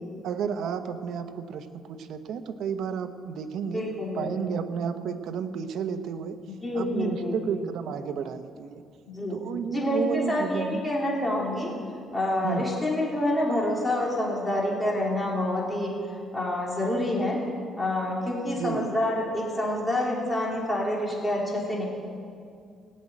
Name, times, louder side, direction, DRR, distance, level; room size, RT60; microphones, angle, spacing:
voice 1, 0.2-3.8 4.1-6.4 6.7-8.8 9.3-10.8 12.4-12.7 18.6-18.8, right 7 dB, 70° right, 9 dB, 0.9 m, -32 dB
voice 2, 3.6-4.6 6.4-7.5 9.0-9.4 9.7-11.7 12.1-15.9 16.3-17.4 17.8-21.8, left 1 dB, 10° left, -4 dB, 3.5 m, -27 dB
17.5 x 7.4 x 9.1 m, 2.3 s
cardioid pair, 150°, 0 cm